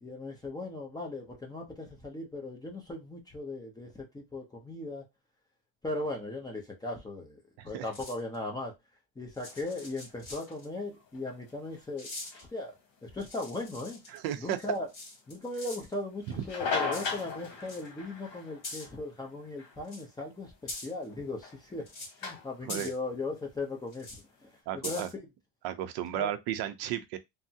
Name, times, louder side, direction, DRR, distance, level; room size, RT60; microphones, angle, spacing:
voice 1, 0.0-5.0 5.8-7.4 7.6-8.7 9.2-12.1 12.5-12.7 13.0-14.0 14.4-14.9 15.3-21.9 22.2-24.1 24.4-24.5 24.7-25.2 26.1-26.3, left 2 dB, 10° left, 0.5 m, -38 dB
sound 1, 7.9-8.4 9.3-10.7 12.0-12.4 13.2-15.9 16.9-17.3 17.6-17.9 18.6-18.9 19.9-20.0 20.7-21.0 21.9-22.2 22.7-23.0 23.9-24.2 24.8-25.1, left 2 dB, 40° left, 1.9 m, -43 dB
sound 2, 9.4-24.6, left 5 dB, 60° left, 1.2 m, -41 dB
voice 2, 14.1-14.6 22.7-22.9 24.7-25.1 25.6-27.2, right 11 dB, 50° right, 0.5 m, -34 dB
3.3 x 2.0 x 2.6 m
cardioid pair, 145°, 48 cm